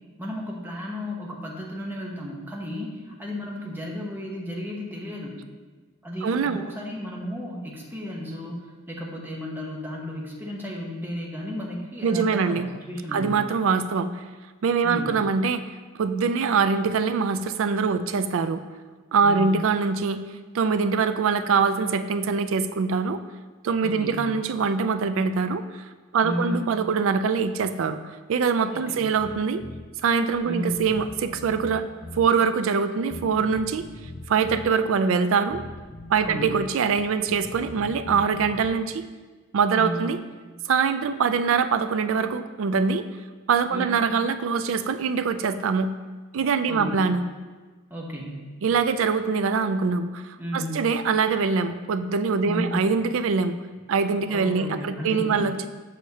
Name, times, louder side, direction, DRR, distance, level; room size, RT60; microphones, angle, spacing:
voice 1, 0.2-5.4 6.0-13.4 14.8-15.2 19.2-19.6 23.8-24.2 26.2-26.7 28.7-29.1 30.4-30.9 36.2-36.6 39.8-40.0 43.7-44.0 46.7-47.0 47.9-48.4 50.4-50.9 52.5-52.8 54.3-55.5, equal, 10° right, -2 dB, 0.8 m, -33 dB
voice 2, 6.2-6.6 12.0-12.7 13.1-14.2 14.6-15.6 16.0-18.6 19.1-20.2 20.5-23.2 23.6-25.8 26.1-29.6 30.0-31.9 32.2-33.9 34.3-35.6 36.1-39.0 39.5-40.2 40.7-43.1 43.5-45.9 46.3-47.2 48.6-53.6 53.9-55.7, right 5 dB, 65° right, 10 dB, 0.3 m, -23 dB
Bass guitar, 29.2-29.9 30.3-30.4 30.7-32.3 33.1-34.7 35.5-36.6 36.9-38.8, left 2 dB, 45° left, 0.6 m, -41 dB
6.4 x 6.4 x 2.8 m, 1.4 s
head